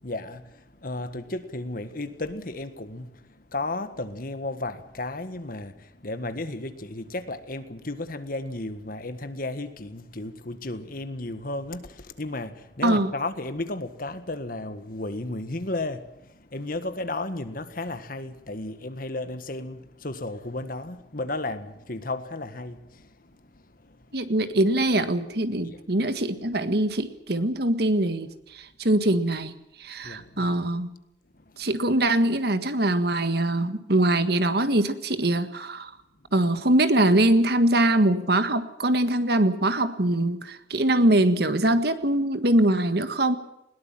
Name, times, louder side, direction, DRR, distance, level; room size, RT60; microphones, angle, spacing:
voice 1, 0.0-3.2 3.5-23.4 23.8-24.0 25.6-25.8 30.0-30.5 31.6-31.7, left 2 dB, 50° left, 1.6 m, -34 dB
voice 2, 24.1-28.3 28.5-29.5 29.8-30.9 31.6-35.9 36.3-43.4, right 1 dB, 60° right, 1.7 m, -23 dB
21.0 x 18.5 x 7.6 m
head